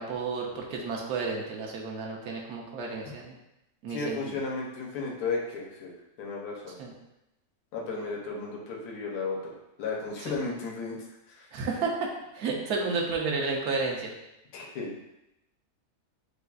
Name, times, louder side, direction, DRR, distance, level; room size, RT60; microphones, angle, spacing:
voice 1, 0.0-3.3 3.8-4.4 6.8-6.9 10.2-10.3 11.5-12.1 12.3-14.1, right 4 dB, 80° right, 0 dB, 1.3 m, -31 dB
voice 2, 3.9-5.9 6.2-6.8 7.7-9.5 9.8-11.0 11.3-11.4 14.5-15.0, left 3 dB, 70° left, -2 dB, 1.2 m, -34 dB
6.8 x 2.6 x 2.4 m, 0.89 s
omnidirectional pair, 1.7 m